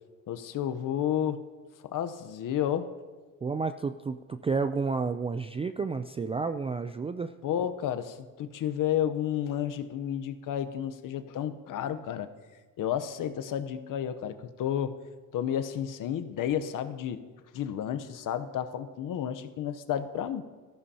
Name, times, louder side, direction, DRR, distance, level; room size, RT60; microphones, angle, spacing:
voice 1, 0.3-1.4 1.8-2.9 7.4-12.3 12.8-15.0 15.3-17.2 17.5-20.4, left 10 dB, 65° left, 10 dB, 0.8 m, -31 dB
voice 2, 3.4-7.3, right 4 dB, 20° right, 9 dB, 0.3 m, -31 dB
18.5 x 14.0 x 2.8 m, 1.4 s
cardioid pair, 95°, 35 cm